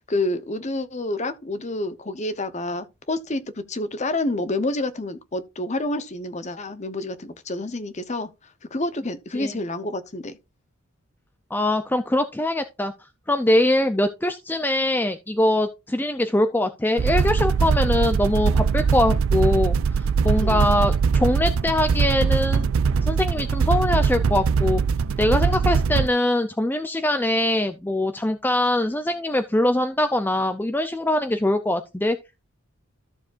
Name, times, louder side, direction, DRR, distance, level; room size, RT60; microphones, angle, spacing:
voice 1, 0.0-8.3 8.7-10.4 20.4-20.7, left 2 dB, 30° left, 0.8 m, -28 dB
voice 2, 11.5-12.9 13.3-22.7 23.0-24.8 25.2-32.2, left 1 dB, 10° left, 0.5 m, -23 dB
sound 1, 17.0-26.1, right 5 dB, 65° right, 0.4 m, -21 dB
13.5 x 7.0 x 2.5 m
head